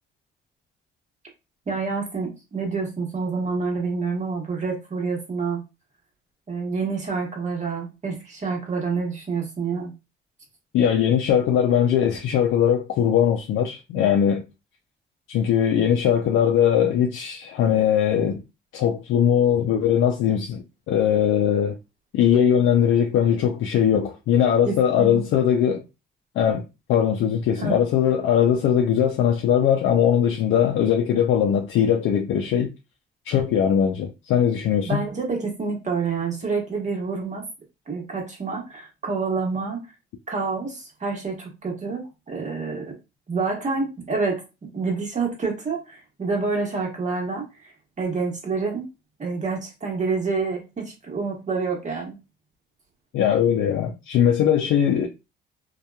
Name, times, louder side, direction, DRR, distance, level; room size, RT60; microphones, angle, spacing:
voice 1, 1.7-5.6 6.5-9.9 24.6-25.3 27.6-27.8 34.9-37.5 37.9-39.9 40.3-42.9 43.3-44.4 44.7-47.7 48.0-48.9 49.2-52.2, right 4 dB, 35° right, 1.2 m, -28 dB
voice 2, 10.7-14.4 15.3-18.4 18.7-21.8 22.1-25.8 26.4-32.7 33.3-35.0 53.1-55.1, left 9 dB, 80° left, 0.4 m, -20 dB
2.8 x 2.3 x 2.2 m
cardioid pair, 90°, 20 cm